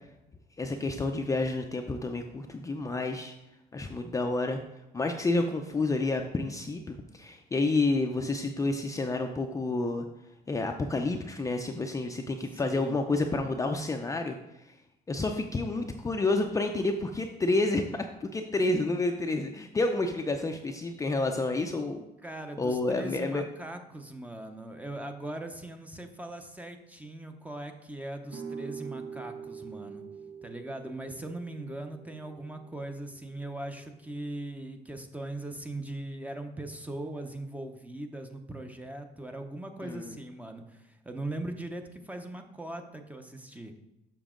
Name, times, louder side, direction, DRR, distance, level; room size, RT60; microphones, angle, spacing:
voice 1, 0.6-3.3 3.7-4.6 4.9-10.0 10.5-14.8 15.1-22.0 22.6-23.4 39.8-40.1, left 2 dB, 20° left, 4 dB, 0.5 m, -29 dB
voice 2, 12.5-13.0 22.2-30.0 30.4-43.7, right 1 dB, 10° right, 6 dB, 0.8 m, -40 dB
sound 1, 28.3-34.0, right 6 dB, 75° right, 1.2 m, -44 dB
7.1 x 6.0 x 3.7 m, 0.92 s
cardioid pair, 110°, 17 cm